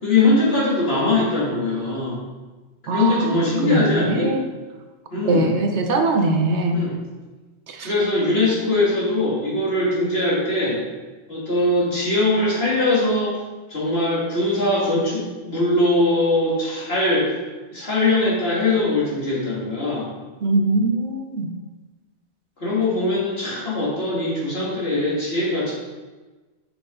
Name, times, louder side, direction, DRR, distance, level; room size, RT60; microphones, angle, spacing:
voice 1, 0.0-2.2 2.9-4.3 5.1-5.5 6.7-6.9 7.8-10.8 11.3-13.4 13.7-17.3 17.7-20.1 22.6-25.7, left 2 dB, 60° left, -7 dB, 2.8 m, -21 dB
voice 2, 2.9-3.3 3.6-4.4 5.2-6.9 7.7-7.9 20.4-21.5, right 2 dB, 80° right, 4 dB, 1.2 m, -21 dB
7.6 x 6.4 x 3.9 m, 1.2 s
omnidirectional pair, 1.2 m